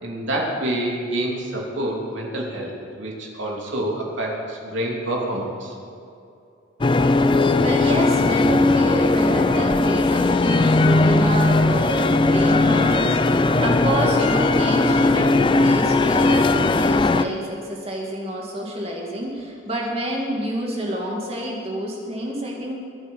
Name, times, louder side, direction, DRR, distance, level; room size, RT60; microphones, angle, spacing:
voice 1, 0.0-5.7, right 1 dB, 70° right, -2 dB, 3.0 m, -27 dB
sound 1, 6.8-17.3, left 2 dB, 25° left, 0.4 m, -18 dB
voice 2, 7.6-22.8, equal, 30° right, -2 dB, 2.6 m, -28 dB
23.0 x 9.1 x 5.5 m, 2.5 s
head